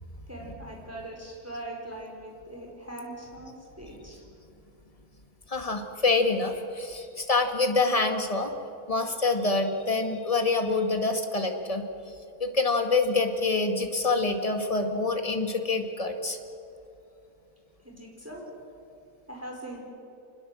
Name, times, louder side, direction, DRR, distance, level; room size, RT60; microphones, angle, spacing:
voice 1, 0.3-4.2 17.8-18.5 19.3-19.8, right 1 dB, 10° right, -1 dB, 4.8 m, -41 dB
voice 2, 5.5-8.5 8.9-16.4, left 3 dB, 25° left, 5 dB, 2.0 m, -26 dB
27.0 x 21.0 x 7.7 m, 2.7 s
omnidirectional pair, 1.6 m